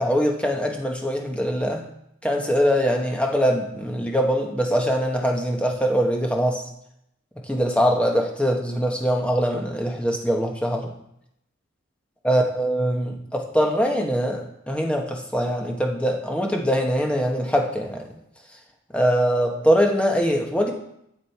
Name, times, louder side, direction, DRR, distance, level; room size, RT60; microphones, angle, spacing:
voice 1, 0.0-1.8 2.2-6.6 7.5-10.9 12.2-14.4 14.7-18.0 18.9-20.7, equal, 5° left, 1 dB, 1.1 m, -22 dB
10.0 x 7.4 x 4.6 m, 0.78 s
head